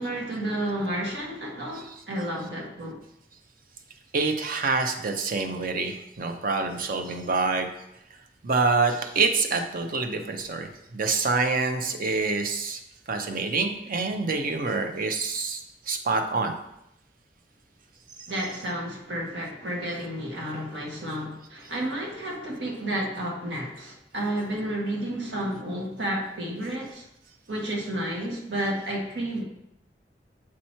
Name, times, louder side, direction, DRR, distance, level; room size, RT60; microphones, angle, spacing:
voice 1, 0.0-3.0 18.3-27.0 27.5-29.4, right 1 dB, 85° right, -1 dB, 1.4 m, -31 dB
voice 2, 4.1-7.7 8.4-12.8 13.1-16.5, right 4 dB, 50° right, 6 dB, 0.6 m, -26 dB
7.3 x 3.0 x 4.3 m, 0.80 s
head